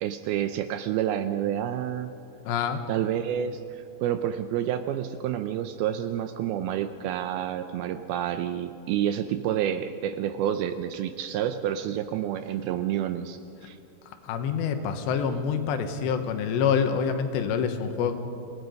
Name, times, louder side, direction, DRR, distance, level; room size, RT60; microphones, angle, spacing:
voice 1, 0.0-2.1 2.9-13.8, right 10 dB, 85° right, 9 dB, 2.2 m, -29 dB
voice 2, 2.5-2.9 14.2-18.2, left 7 dB, 80° left, 7 dB, 3.4 m, -26 dB
27.0 x 18.0 x 5.3 m, 2.7 s
omnidirectional pair, 5.0 m